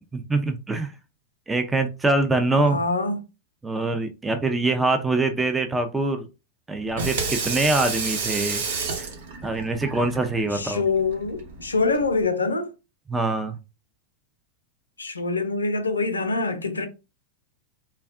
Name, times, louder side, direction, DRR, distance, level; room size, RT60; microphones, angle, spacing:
voice 1, 0.1-0.9 1.5-2.8 3.6-6.3 6.7-8.6 9.0-9.1 9.4-10.8 13.1-13.6, right 2 dB, 10° right, 0.5 m, -24 dB
voice 2, 2.6-3.2 10.5-12.7 15.0-16.9, left 3 dB, 90° left, 0.5 m, -25 dB
Water tap faucet / Sink (filling or washing), 6.8-12.3, right 4 dB, 70° right, 1.0 m, -31 dB
3.4 x 2.2 x 2.4 m
hypercardioid pair, 95°, 0 cm